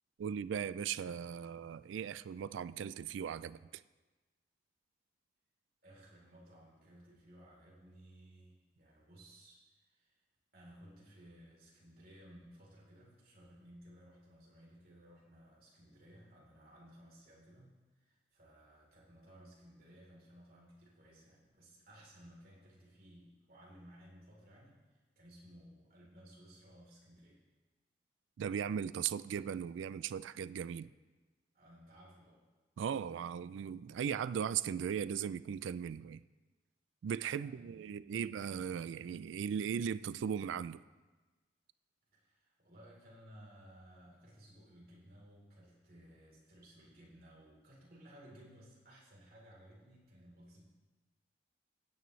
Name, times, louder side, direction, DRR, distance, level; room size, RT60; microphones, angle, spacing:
voice 1, 0.2-3.8 28.4-30.9 32.8-36.2 37.0-40.8, right 8 dB, 85° right, 16 dB, 0.3 m, -38 dB
voice 2, 5.8-10.2 10.5-24.9 25.2-27.4 31.5-32.5 37.3-38.3 42.1-50.6, equal, 50° right, -5 dB, 3.6 m, -58 dB
16.5 x 9.4 x 3.2 m, 1.2 s
head